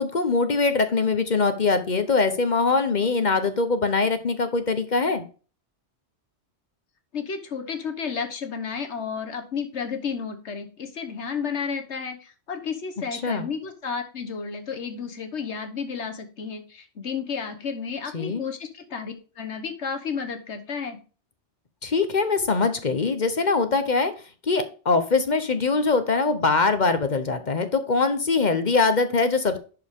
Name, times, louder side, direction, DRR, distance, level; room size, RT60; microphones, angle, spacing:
voice 1, 0.0-5.2 13.1-13.5 18.1-18.4 21.8-24.1 24.5-29.6, left 4 dB, 45° left, 9 dB, 0.9 m, -22 dB
voice 2, 7.1-21.0, left 6 dB, 70° left, 7 dB, 1.4 m, -32 dB
11.0 x 4.9 x 3.6 m, 0.37 s
omnidirectional pair, 1.2 m